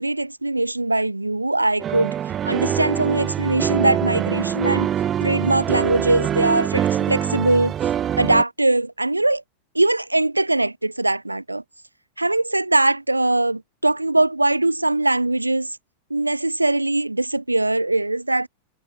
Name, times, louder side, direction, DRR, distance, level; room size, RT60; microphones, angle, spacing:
voice 1, 0.0-2.1 2.4-4.9 5.2-7.7 8.2-9.4 9.7-11.6 12.2-15.7 16.1-18.5, right 2 dB, 85° right, 0.5 m, -21 dB
sound 1, 1.8-8.4, right 10 dB, 25° right, 1.5 m, -24 dB
figure-of-eight pair, 90°, 0 cm